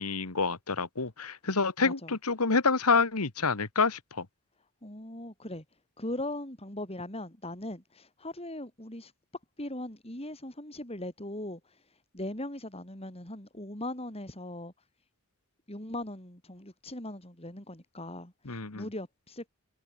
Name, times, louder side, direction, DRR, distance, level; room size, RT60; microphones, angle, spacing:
voice 1, 0.0-4.3 18.5-18.9, left 4 dB, 85° left, 1.8 m, -28 dB
voice 2, 1.8-2.2 4.8-5.6 6.0-9.1 9.6-14.7 15.7-19.5, left 1 dB, 25° left, 5.5 m, -39 dB
head